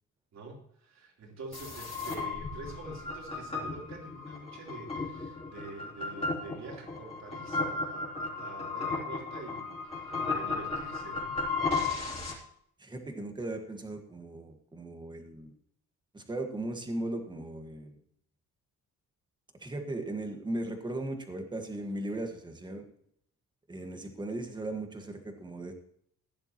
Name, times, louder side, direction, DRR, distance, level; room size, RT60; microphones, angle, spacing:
voice 1, 0.3-11.4, right 3 dB, 55° right, 0 dB, 3.5 m, -46 dB
sound 1, 1.5-12.3, left 3 dB, 20° left, 3.4 m, -35 dB
voice 2, 12.8-15.5 16.1-17.9 19.6-22.8 23.7-25.7, right 1 dB, 15° right, 4 dB, 1.5 m, -37 dB
15.5 x 10.5 x 3.0 m, 0.66 s
cardioid pair, 175°, 32 cm